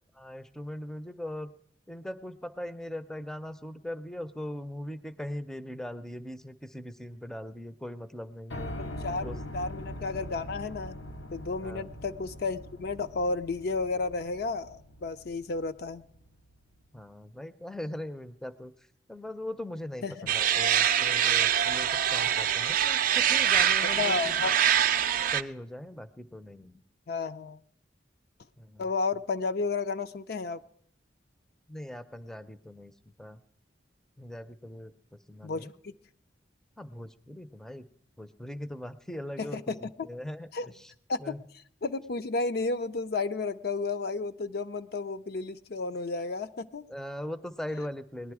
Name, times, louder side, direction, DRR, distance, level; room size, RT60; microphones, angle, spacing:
voice 1, 0.1-1.5 1.9-8.7 9.2-9.4 11.6-11.9 16.9-18.7 19.1-24.7 25.3-26.8 28.6-28.9 31.7-32.9 33.2-33.4 34.2-34.9 35.3-35.7 36.8-37.9 38.2-40.5 40.8-40.9 41.2-41.4 46.9-48.3, left 1 dB, 5° left, 12 dB, 0.5 m, -40 dB
Piano, 8.5-16.5, left 1 dB, 85° left, 0.8 m, -42 dB
voice 2, 8.8-11.0 11.3-16.0 20.0-20.3 23.8-24.5 27.1-27.6 28.8-30.6 35.4-35.9 39.4-40.1 40.5-40.7 41.1-41.4 41.8-46.8, left 3 dB, 60° left, 9 dB, 0.5 m, -32 dB
sound 1, 20.3-25.4, right 9 dB, 50° right, 0.5 m, -24 dB
18.5 x 11.0 x 4.8 m, 0.68 s
head